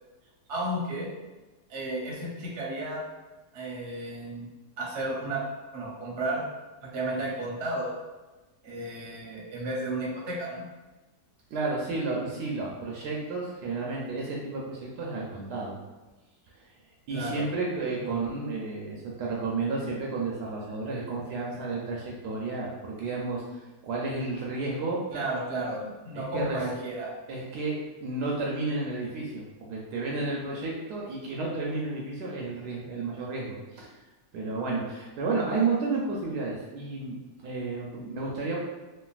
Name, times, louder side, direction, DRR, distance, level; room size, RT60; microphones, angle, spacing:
voice 1, 0.5-1.1 1.7-3.0 3.5-4.5 4.8-5.4 5.7-6.4 6.8-7.9 8.6-10.6 17.1-17.5 17.9-18.2 25.1-27.1, right 2 dB, 50° right, -4 dB, 0.8 m, -33 dB
voice 2, 11.5-15.7 16.5-16.7 17.1-25.0 26.1-26.6 27.3-33.9 34.3-38.6, right 3 dB, 75° right, -3 dB, 1.1 m, -32 dB
3.2 x 2.3 x 2.3 m, 1.2 s
omnidirectional pair, 1.9 m